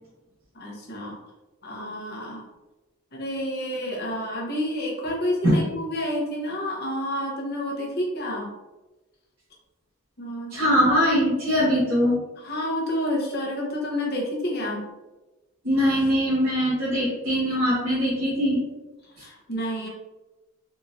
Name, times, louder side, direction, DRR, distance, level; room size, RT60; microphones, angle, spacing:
voice 1, 0.5-1.2 1.6-2.5 3.1-8.5 10.2-10.7 12.4-14.8 19.2-19.9, equal, 50° left, -2 dB, 0.8 m, -29 dB
voice 2, 10.5-12.2 15.6-18.6, equal, 75° right, -10 dB, 1.1 m, -22 dB
3.7 x 2.6 x 2.6 m, 1.1 s
head